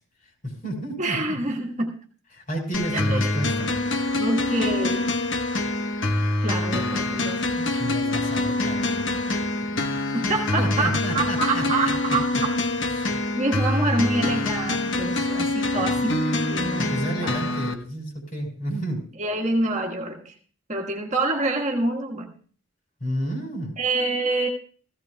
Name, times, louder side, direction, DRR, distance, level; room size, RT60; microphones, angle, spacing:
voice 1, 0.4-1.4 2.3-3.7 7.2-7.3 7.7-10.0 10.6-12.2 12.8-13.2 15.8-16.1 16.8-19.1 23.0-23.7, equal, 40° left, 1 dB, 4.6 m, -32 dB
voice 2, 1.0-1.9 2.9-3.3 4.2-5.1 6.4-7.7 10.1-12.5 13.4-16.2 16.5-17.4 19.2-20.3 20.7-22.3 23.8-24.5, right 2 dB, 35° right, 0 dB, 1.6 m, -26 dB
sound 1, 2.7-17.7, left 2 dB, 60° left, 1.1 m, -25 dB
17.0 x 16.0 x 2.3 m, 0.44 s
head